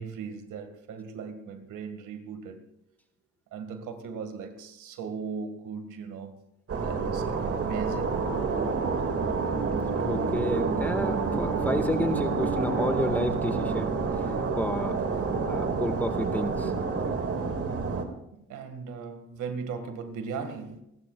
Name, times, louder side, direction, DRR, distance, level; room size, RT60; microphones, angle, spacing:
voice 1, 0.0-2.6 3.5-6.3 6.8-8.1 14.1-14.2 18.5-20.8, right 5 dB, 80° right, 2.1 m, -38 dB
sound 1, 6.7-18.0, right 4 dB, 50° right, 2.4 m, -28 dB
voice 2, 10.0-14.0 14.6-15.0 15.5-16.7, equal, 5° left, 1.8 m, -30 dB
29.5 x 12.5 x 2.5 m
cardioid pair, 90°, 30 cm